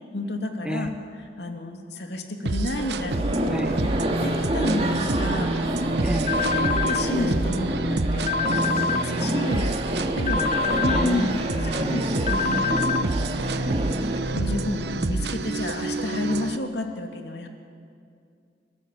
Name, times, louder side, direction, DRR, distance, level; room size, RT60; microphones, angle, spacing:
voice 1, 0.1-0.9 1.2-3.7 4.2-6.0 6.4-9.7 10.1-10.4 10.8-11.3 11.6-14.0 14.3-17.5, left 1 dB, 80° left, 3 dB, 2.6 m, -31 dB
voice 2, 0.6-1.0 3.5-3.8 6.0-6.4 10.3-12.3, equal, 5° right, 7 dB, 0.9 m, -31 dB
sound 1, 2.5-16.6, right 2 dB, 75° right, 0.9 m, -28 dB
sound 2, 3.1-14.2, right 1 dB, 35° right, 2.1 m, -28 dB
sound 3, 6.3-7.0 8.3-9.0 10.3-11.0 12.3-13.0, left 6 dB, 40° left, 0.6 m, -25 dB
29.5 x 14.0 x 8.6 m, 2.3 s
head